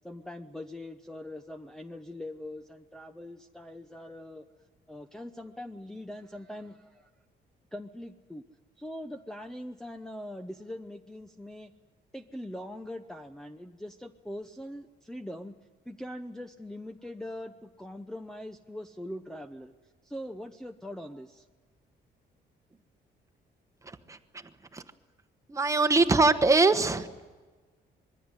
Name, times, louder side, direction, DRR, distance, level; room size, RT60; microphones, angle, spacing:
voice 1, 0.0-4.5 4.9-7.1 7.7-8.4 8.8-11.7 12.1-15.5 15.9-19.7 20.0-21.5, left 1 dB, 5° left, 3 dB, 0.8 m, -42 dB
voice 2, 23.8-24.2 24.7-24.8 25.5-27.2, right 3 dB, 15° right, 9 dB, 1.2 m, -23 dB
25.5 x 21.5 x 9.8 m, 1.3 s
cardioid pair, 150°, 18 cm